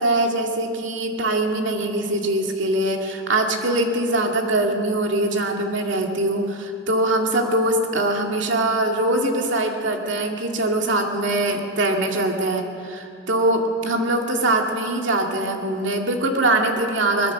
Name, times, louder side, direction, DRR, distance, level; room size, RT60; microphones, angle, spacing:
voice 1, 0.0-17.3, right 1 dB, 75° right, 2 dB, 2.2 m, -22 dB
22.5 x 20.5 x 6.2 m, 2.6 s
head